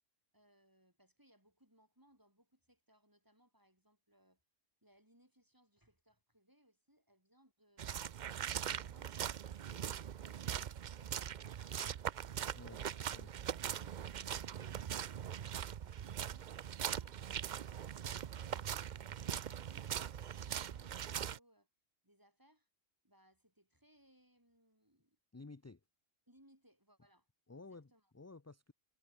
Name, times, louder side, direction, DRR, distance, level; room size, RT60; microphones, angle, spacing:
voice 1, 0.3-4.4 4.8-8.2 22.0-22.7 23.0-25.2 26.3-27.3 27.6-28.1, equal, 15° right, 6.1 m, -70 dB
sound 1, 7.8-21.4, right 9 dB, 55° right, 0.5 m, -41 dB
voice 2, 12.5-12.9 13.1-13.3 25.3-25.8 27.5-28.7, left 3 dB, 20° left, 0.5 m, -53 dB
omnidirectional pair, 1.3 m